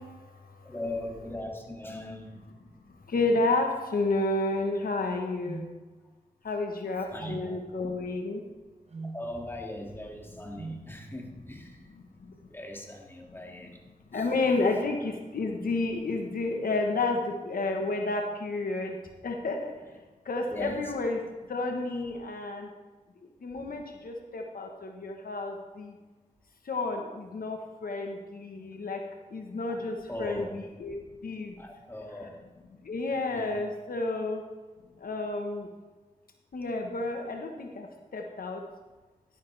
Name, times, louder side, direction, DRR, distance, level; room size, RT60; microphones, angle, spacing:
voice 1, 0.6-2.4 7.1-7.6 7.8-8.0 9.1-11.8 12.5-13.8 14.1-14.3 20.5-20.9 30.1-30.5 31.6-32.4 33.3-33.5, left 1 dB, 15° left, 0 dB, 2.2 m, -39 dB
voice 2, 3.1-5.6 6.4-8.4 14.1-17.2 17.4-19.0 19.2-19.7 20.3-21.2 21.5-22.7 23.4-25.9 26.7-29.0 29.3-31.0 31.2-31.5 32.9-34.4 35.0-35.7 36.5-37.9 38.1-38.6, left 2 dB, 75° left, 3 dB, 1.2 m, -30 dB
sound 1, 5.4-5.7 7.2-7.5 8.9-9.2 10.6-10.9, right 3 dB, 45° right, 1.1 m, -39 dB
11.5 x 11.0 x 3.4 m, 1.3 s
cardioid pair, 55°, 15 cm